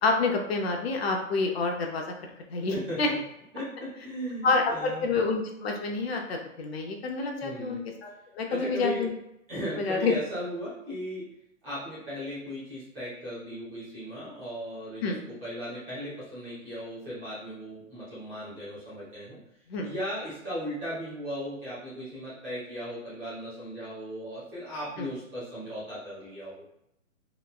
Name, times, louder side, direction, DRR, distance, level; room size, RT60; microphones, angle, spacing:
voice 1, 0.0-2.1 2.5-3.1 4.4-9.1 9.8-10.1 15.0-15.2 19.7-19.9 25.0-25.1, left 3 dB, 50° left, 2 dB, 0.5 m, -28 dB
voice 2, 2.6-3.2 3.5-5.1 7.4-7.8 8.5-9.1 9.5-11.3 11.6-19.4 19.8-26.6, equal, 10° right, -11 dB, 0.4 m, -37 dB
2.9 x 2.1 x 2.3 m, 0.81 s
hypercardioid pair, 140°, 40 cm